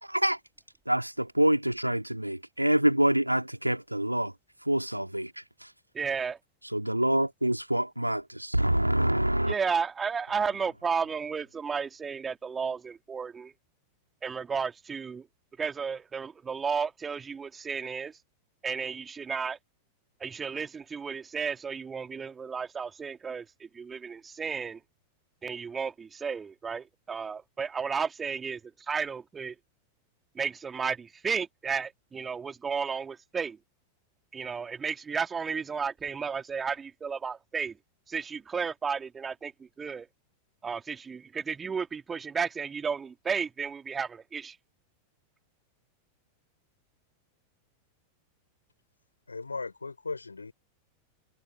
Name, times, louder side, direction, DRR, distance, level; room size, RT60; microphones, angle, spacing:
voice 1, 0.0-0.4 0.9-4.3 4.7-5.7 6.7-9.5, right 1 dB, 90° right, 2.2 m, -26 dB
voice 2, 5.9-6.4 9.5-13.5 14.2-15.3 15.6-18.1 18.6-19.6 20.2-24.8 25.4-28.6 28.9-29.5 30.3-33.6 34.3-37.7 38.1-40.1 40.6-44.6, right 6 dB, 15° right, 2.7 m, -33 dB
voice 3, 49.3-50.5, left 4 dB, 80° left, 4.6 m, -37 dB
figure-of-eight pair, 90°, 0 cm